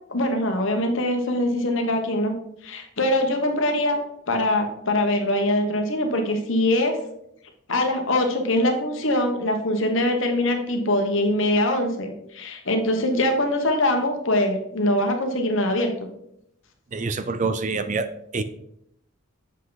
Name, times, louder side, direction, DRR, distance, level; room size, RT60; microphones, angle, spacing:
voice 1, 0.1-2.3 2.6-4.0 4.3-7.0 7.7-16.1, left 1 dB, 60° left, 4 dB, 1.3 m, -23 dB
voice 2, 16.9-18.1 18.3-18.4, right 4 dB, 35° right, 11 dB, 0.4 m, -26 dB
7.3 x 5.7 x 4.0 m, 0.76 s
head